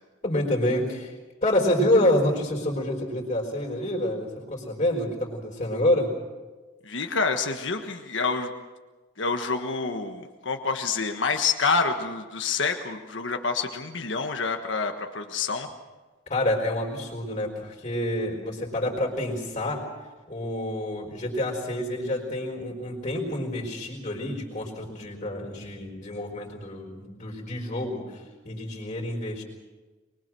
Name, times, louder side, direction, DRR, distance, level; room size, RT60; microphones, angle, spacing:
voice 1, 0.2-6.1 16.3-19.8 20.3-29.4, left 1 dB, 35° left, -2 dB, 4.8 m, -27 dB
voice 2, 6.8-8.5 9.2-15.7, left 4 dB, 85° left, 4 dB, 1.5 m, -27 dB
24.5 x 22.0 x 6.3 m, 1.3 s
head